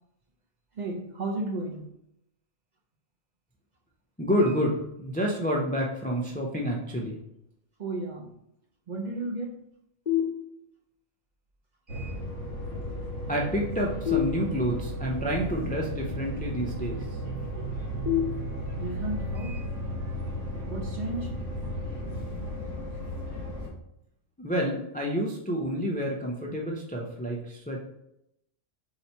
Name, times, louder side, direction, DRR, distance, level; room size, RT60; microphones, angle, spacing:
voice 1, 0.7-1.9 7.8-8.3 8.9-9.6 11.9-12.2 18.7-19.6 20.7-21.4, right 2 dB, 45° right, -1 dB, 0.7 m, -34 dB
voice 2, 4.2-7.2 13.3-17.2 24.4-27.8, equal, 15° left, -1 dB, 0.3 m, -29 dB
sound 1, 10.1-11.0 14.0-15.1 18.1-19.1, left 11 dB, 40° left, 0.9 m, -30 dB
sound 2, 11.9-23.7, equal, 75° right, 1.7 m, -34 dB
4.1 x 2.8 x 4.4 m, 0.81 s
omnidirectional pair, 1.2 m